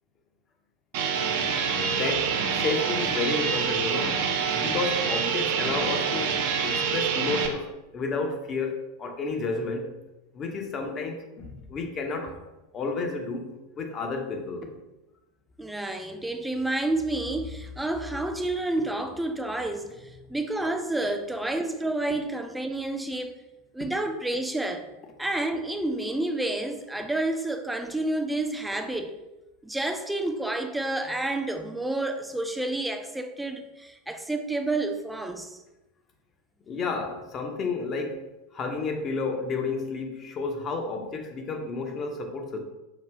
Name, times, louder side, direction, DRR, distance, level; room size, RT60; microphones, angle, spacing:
sound 1, 0.9-7.5, right 6 dB, 55° right, 0.5 m, -26 dB
voice 1, 1.7-4.2 4.5-9.9 10.3-12.4 12.7-13.5 13.8-14.7 36.7-38.2 38.5-42.6, left 3 dB, 30° left, 4 dB, 0.7 m, -31 dB
voice 2, 15.6-19.9 20.3-23.3 23.7-24.9 25.2-29.1 29.6-35.6, right 2 dB, 5° right, 5 dB, 0.4 m, -29 dB
4.9 x 2.4 x 3.4 m, 1.0 s
figure-of-eight pair, 85°, 0 cm